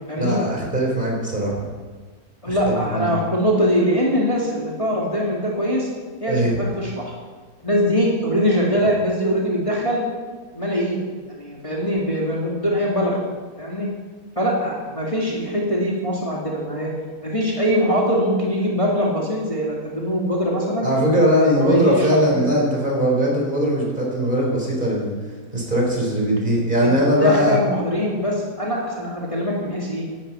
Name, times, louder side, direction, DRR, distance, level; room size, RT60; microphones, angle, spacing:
voice 1, 0.2-1.6 2.5-3.1 6.3-6.6 20.8-25.1 25.5-27.6, equal, 30° right, -2 dB, 4.1 m, -20 dB
voice 2, 2.4-5.9 6.2-7.1 7.6-10.0 10.5-11.0 11.3-13.2 13.6-13.9 14.4-16.9 17.2-20.9 21.4-22.1 22.4-22.6 26.8-26.9 27.2-30.1, equal, 20° left, -4 dB, 2.3 m, -22 dB
16.5 x 12.0 x 5.6 m, 1.5 s
omnidirectional pair, 1.6 m